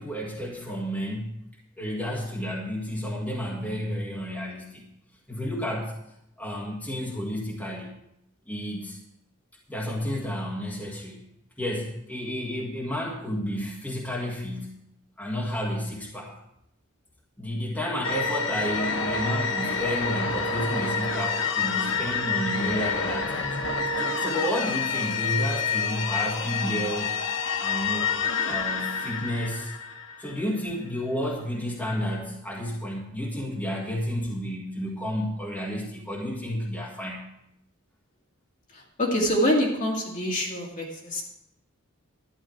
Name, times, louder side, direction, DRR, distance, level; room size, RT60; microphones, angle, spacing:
voice 1, 0.0-1.3 1.8-4.9 5.3-6.0 6.4-7.9 8.5-9.0 9.7-11.2 11.6-14.8 15.2-16.3 17.4-23.5 24.0-27.1 27.6-28.1 28.5-29.7 30.2-37.3, equal, 5° left, -3 dB, 1.8 m, -31 dB
sound 1, 18.0-30.5, left 5 dB, 60° left, 0.9 m, -28 dB
voice 2, 38.7-41.2, equal, 40° left, -2 dB, 2.2 m, -25 dB
12.0 x 9.6 x 4.6 m, 0.80 s
head